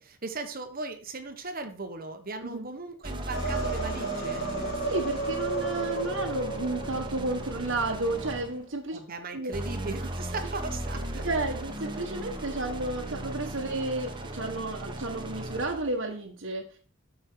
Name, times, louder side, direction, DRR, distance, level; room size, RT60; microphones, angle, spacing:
voice 1, 0.0-4.5 8.9-11.3, right 3 dB, 45° right, 7 dB, 1.2 m, -38 dB
sound 1, 3.0-8.6 9.5-15.9, right 1 dB, 25° right, 1.4 m, -37 dB
sound 2, 3.3-8.2, right 2 dB, 55° left, 2.6 m, -34 dB
voice 2, 4.8-9.0 9.3-9.5 11.2-16.8, right 2 dB, 65° right, -1 dB, 1.4 m, -32 dB
13.0 x 5.5 x 4.6 m, 0.41 s
head